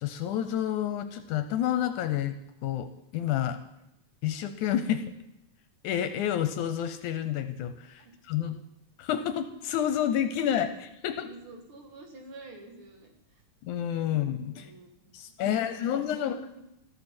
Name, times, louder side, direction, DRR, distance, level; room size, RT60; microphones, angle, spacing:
voice 1, 0.0-3.6 4.2-5.1 5.8-8.6 9.0-11.3 13.6-14.7 15.1-16.4, left 10 dB, 75° left, 9 dB, 2.0 m, -29 dB
voice 2, 11.2-13.4 14.0-16.6, right 1 dB, 50° right, 3 dB, 2.0 m, -48 dB
14.0 x 13.5 x 4.4 m, 0.86 s
omnidirectional pair, 3.7 m